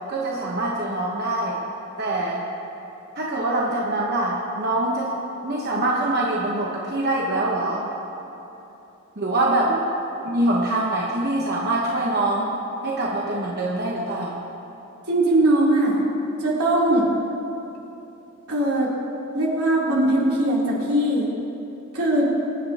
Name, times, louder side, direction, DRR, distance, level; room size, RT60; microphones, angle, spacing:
voice 1, 0.1-1.6 2.0-2.5 3.2-5.2 5.4-7.9 9.2-9.7 10.2-12.6 12.8-14.4, right 2 dB, 45° right, -3 dB, 1.1 m, -24 dB
voice 2, 15.1-16.0 16.4-17.1 18.5-18.9 19.3-21.3 21.9-22.3, right 1 dB, 80° right, -5 dB, 3.3 m, -20 dB
24.0 x 10.5 x 2.9 m, 3.0 s
head